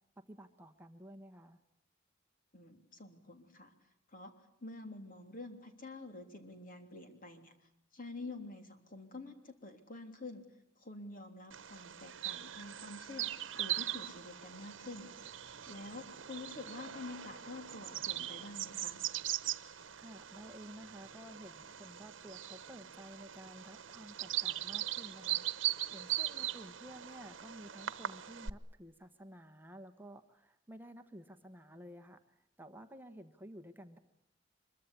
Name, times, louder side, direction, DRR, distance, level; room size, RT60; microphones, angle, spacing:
voice 1, 0.2-1.6 15.9-16.0 20.0-34.0, equal, 10° right, 7 dB, 1.3 m, -53 dB
voice 2, 2.5-3.7 4.1-4.3 4.6-7.5 7.9-10.4 10.8-15.1 15.7-19.0, left 2 dB, 45° left, 6 dB, 3.3 m, -48 dB
Bird vocalization bird call bird song, 11.5-28.5, right 12 dB, 85° right, 1.0 m, -40 dB
25.0 x 23.0 x 9.8 m, 0.72 s
head